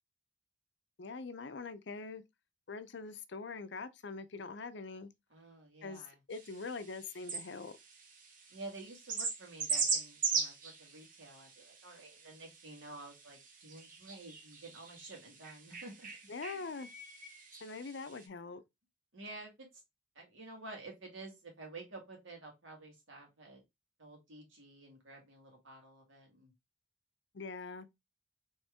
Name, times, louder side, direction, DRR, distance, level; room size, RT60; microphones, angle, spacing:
voice 1, 1.0-2.2 2.7-5.1 5.8-7.7 16.3-16.9 17.6-18.6 27.3-27.9, left 4 dB, 60° left, 0.5 m, -43 dB
voice 2, 5.3-6.2 8.5-16.1 16.4-16.6 19.1-19.7 20.2-23.6 24.0-26.5, right 2 dB, 85° right, 2.0 m, -50 dB
sound 1, 6.3-18.3, right 5 dB, 45° right, 0.9 m, -40 dB
4.3 x 3.2 x 3.4 m
head